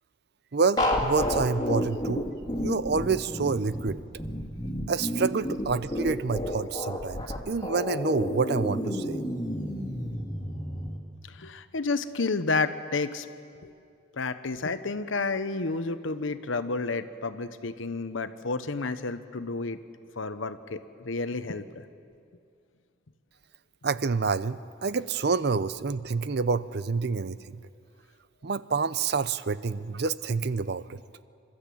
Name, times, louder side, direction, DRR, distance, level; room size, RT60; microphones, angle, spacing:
voice 1, 0.5-2.3 2.6-4.0 4.9-9.2 23.8-27.6 28.4-31.0, right 4 dB, 55° right, 16 dB, 0.6 m, -28 dB
sound 1, 0.8-11.0, left 1 dB, 20° left, 2.3 m, -31 dB
voice 2, 11.4-13.2 13.6-13.7 14.2-19.8 20.2-20.8 21.0-21.6, left 3 dB, 85° left, 11 dB, 1.0 m, -30 dB
27.5 x 13.0 x 8.5 m, 2.4 s
head